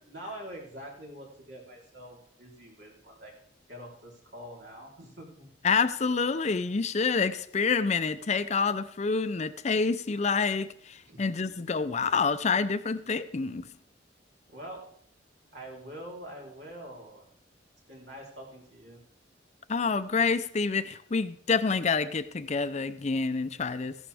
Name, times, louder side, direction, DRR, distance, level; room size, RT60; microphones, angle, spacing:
voice 1, 0.1-3.3 3.7-5.5 11.0-11.5 14.5-14.8 15.5-17.2 17.9-19.0, equal, 75° right, 3.8 m, -45 dB
voice 2, 5.6-13.7 19.7-24.0, left 4 dB, 40° left, 0.5 m, -27 dB
15.0 x 11.0 x 3.5 m
head